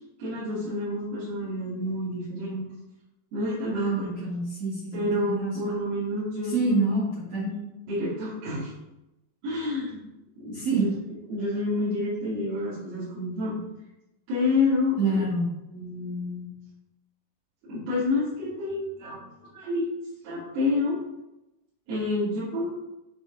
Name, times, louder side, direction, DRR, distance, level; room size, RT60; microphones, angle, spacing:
voice 1, 0.2-2.6 3.3-4.3 4.9-7.0 7.4-8.7 9.4-10.0 10.4-11.0 11.3-13.6 14.3-15.3 15.7-16.5 17.6-19.3 19.5-19.9 20.2-21.0 21.9-22.7, left 2 dB, 80° right, -12 dB, 5.1 m, -29 dB
voice 2, 3.7-5.7 6.4-7.5 10.5-10.9 15.0-15.5, right 3 dB, 60° right, -7 dB, 1.6 m, -27 dB
10.0 x 3.6 x 4.1 m, 0.93 s
omnidirectional pair, 5.9 m